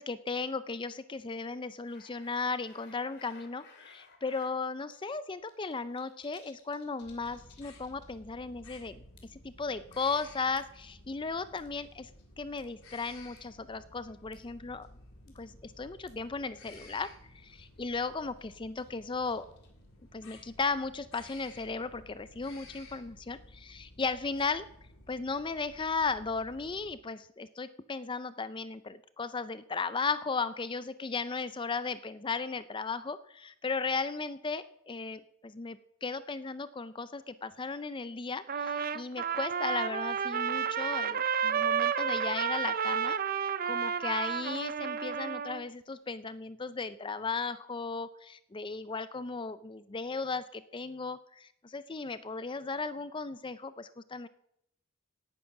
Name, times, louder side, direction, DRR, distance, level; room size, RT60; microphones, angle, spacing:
voice 1, 0.0-9.0 9.3-12.1 12.4-14.9 15.4-19.5 20.1-24.7 25.1-43.2 43.7-54.3, left 4 dB, 20° left, 14 dB, 0.5 m, -36 dB
sound 1, 1.8-4.5 4.9-5.0 5.3-8.3 8.6-8.7 9.2-9.5 9.9-10.8 11.6-12.2 12.6-12.7 13.4-13.5 14.3-14.5 14.8-14.9 15.3-15.4 15.7-15.8 16.1-16.2 16.7-16.8 17.1-17.2 17.5-17.8 18.2-19.8, left 5 dB, 50° left, 2.9 m, -59 dB
sound 2, 7.0-26.9, left 2 dB, 75° left, 3.3 m, -55 dB
Trumpet, 38.5-45.6, right 7 dB, 40° right, 0.5 m, -31 dB
17.5 x 9.2 x 5.9 m, 0.76 s
head